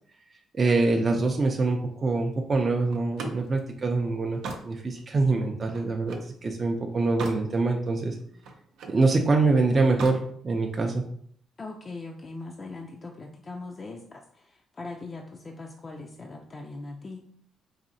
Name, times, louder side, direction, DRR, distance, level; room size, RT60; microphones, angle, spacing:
voice 1, 0.5-8.2 8.9-11.0, right 3 dB, 35° right, 2 dB, 0.4 m, -25 dB
Slam, 2.9-6.4 6.8-7.5 7.9-9.0 9.8-10.3, right 3 dB, 80° right, 0.6 m, -40 dB
voice 2, 11.6-17.3, left 3 dB, 35° left, 1 dB, 0.4 m, -40 dB
4.1 x 2.7 x 2.6 m, 0.63 s
cardioid pair, 90°, 0 cm